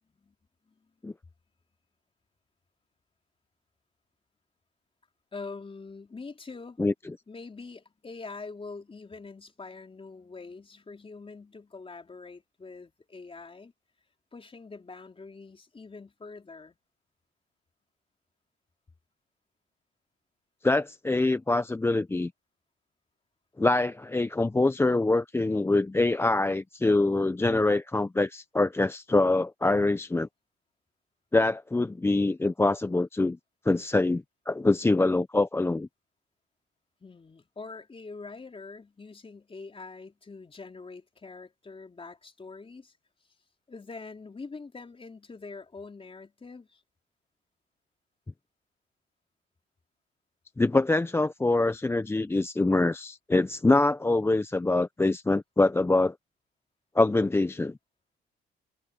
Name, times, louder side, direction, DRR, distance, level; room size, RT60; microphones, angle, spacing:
voice 1, 5.3-6.8 7.3-13.7 14.3-16.8 37.0-42.9 43.7-46.8, left 4 dB, 25° left, 3.9 m, -44 dB
voice 2, 20.6-22.3 23.6-30.3 31.3-33.4 33.7-35.9 50.6-56.1 57.0-57.7, left 2 dB, 10° left, 0.6 m, -24 dB
cardioid pair, 90°, 20 cm